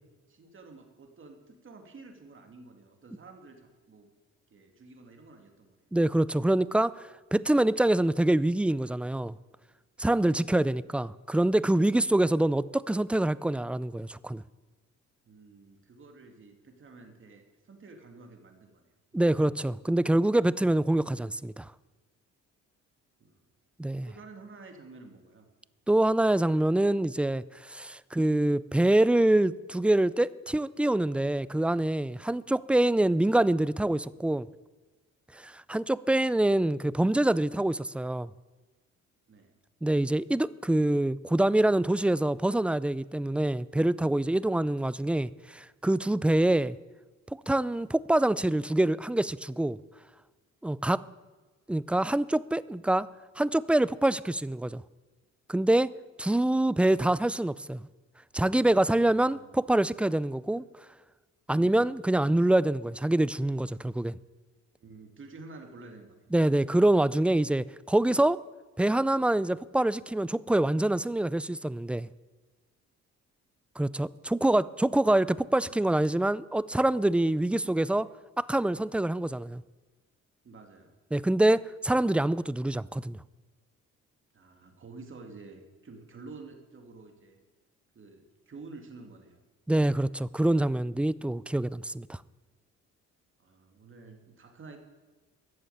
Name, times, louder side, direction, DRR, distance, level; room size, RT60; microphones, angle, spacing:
voice 1, 0.3-4.1 4.5-5.9 10.3-10.5 15.3-18.8 19.1-19.5 23.2-23.4 23.9-25.5 28.1-28.2 39.3-39.5 59.1-59.5 61.6-61.9 64.8-66.3 75.6-76.0 80.4-80.9 84.3-87.4 87.9-89.4 93.4-94.8, right 3 dB, 40° right, 2.4 m, -50 dB
voice 2, 5.9-7.0 7.3-9.4 10.0-14.4 19.1-21.7 23.8-24.1 25.9-34.5 35.4-38.3 39.8-46.8 47.5-49.8 50.6-51.0 51.7-53.1 53.4-54.8 55.5-55.9 56.2-57.8 58.3-60.6 61.5-64.2 66.3-68.4 68.8-72.1 73.8-78.1 78.4-79.6 81.1-83.2 89.7-92.2, right 1 dB, 5° right, 0.3 m, -25 dB
13.5 x 7.1 x 9.3 m
cardioid pair, 90°, 30 cm